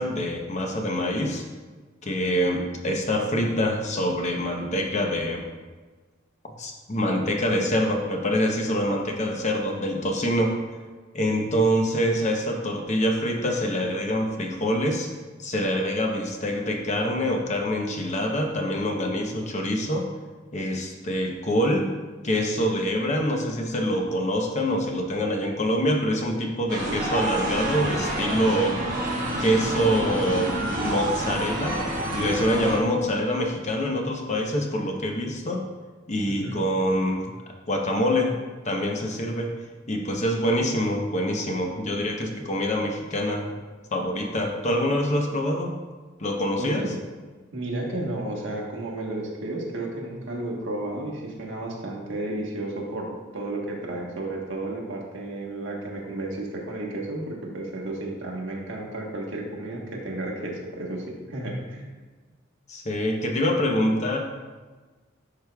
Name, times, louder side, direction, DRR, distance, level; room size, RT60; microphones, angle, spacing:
voice 1, 0.0-1.4 2.0-5.4 6.6-10.6 11.1-15.1 15.4-20.1 20.5-21.9 22.2-28.8 29.4-31.8 32.1-35.6 36.1-37.4 37.7-38.3 38.6-39.5 39.9-43.5 43.9-45.7 46.2-46.8 62.7-64.2, equal, 35° left, 2 dB, 0.8 m, -25 dB
sound 1, 26.7-32.8, right 1 dB, 45° right, 1.4 m, -28 dB
voice 2, 36.2-36.6 46.6-46.9 47.5-61.9, right 2 dB, 65° right, -2 dB, 1.4 m, -32 dB
10.5 x 5.0 x 2.3 m, 1.3 s
head